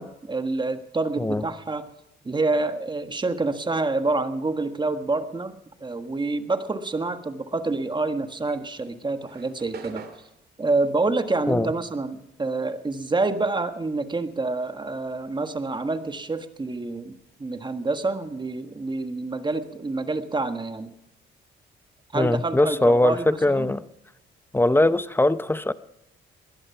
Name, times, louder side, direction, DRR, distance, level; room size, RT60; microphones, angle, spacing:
voice 1, 0.0-1.9 2.2-10.0 10.6-17.1 17.4-20.9 22.1-23.7, right 3 dB, 25° right, 9 dB, 1.5 m, -27 dB
sound 1, 8.3-13.0 13.3-15.3, right 6 dB, 55° right, 2.8 m, -46 dB
voice 2, 22.1-23.8 24.5-25.7, left 1 dB, 10° left, 15 dB, 0.7 m, -21 dB
20.5 x 11.0 x 5.8 m, 0.84 s
cardioid pair, 90°, 20 cm